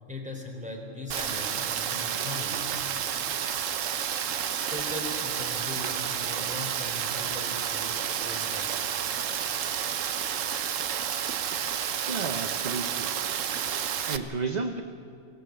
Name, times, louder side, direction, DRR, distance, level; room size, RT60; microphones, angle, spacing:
voice 1, 0.1-2.6 4.6-8.7 11.4-11.6, left 1 dB, 5° right, 0 dB, 3.4 m, -39 dB
Rain, 1.1-14.2, right 8 dB, 70° right, 1.2 m, -30 dB
voice 2, 11.8-13.1 13.5-14.8, right 4 dB, 40° right, 6 dB, 0.8 m, -33 dB
23.5 x 16.5 x 7.9 m, 2.5 s
omnidirectional pair, 1.4 m